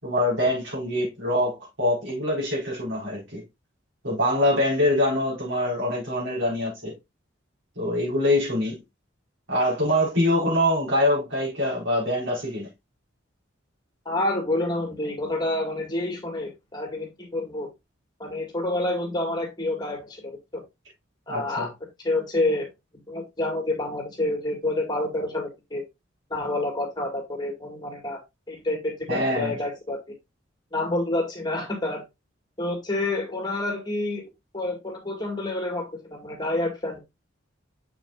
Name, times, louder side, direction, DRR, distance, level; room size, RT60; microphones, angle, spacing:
voice 1, 0.0-3.4 4.0-6.9 7.8-8.8 9.5-12.7 21.3-21.7 29.1-29.6, left 1 dB, 80° right, 4.4 m, -24 dB
voice 2, 14.1-17.7 18.2-20.6 21.3-21.7 22.0-22.7 23.1-25.8 26.3-28.2 28.5-30.0 30.7-32.0 32.6-37.0, left 2 dB, 20° left, 2.1 m, -28 dB
6.9 x 6.6 x 2.4 m
head